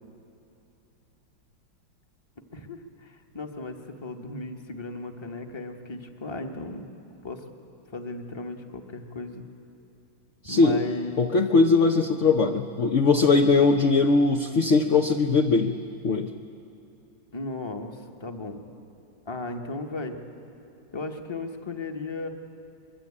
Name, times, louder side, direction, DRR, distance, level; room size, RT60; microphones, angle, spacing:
voice 1, 2.5-6.9 7.2-7.4 7.9-9.4 10.4-11.3 17.3-18.6 19.3-20.2 20.9-22.3, left 2 dB, 15° left, 4 dB, 1.2 m, -36 dB
voice 2, 10.4-10.8 11.2-15.8 16.0-16.3, left 4 dB, 55° left, 4 dB, 0.9 m, -20 dB
23.5 x 22.5 x 8.6 m, 2.9 s
omnidirectional pair, 2.2 m